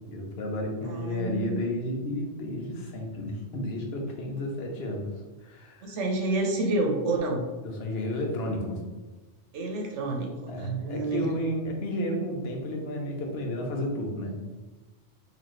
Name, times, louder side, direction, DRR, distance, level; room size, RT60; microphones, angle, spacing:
voice 1, 0.1-5.1 5.4-5.9 7.6-8.8 10.5-14.3, left 1 dB, 65° left, 1 dB, 1.0 m, -32 dB
voice 2, 0.8-1.6 5.8-7.4 9.5-10.3 10.6-11.2, right 2 dB, 80° right, 1 dB, 1.1 m, -28 dB
4.0 x 2.7 x 3.1 m, 1.2 s
omnidirectional pair, 1.2 m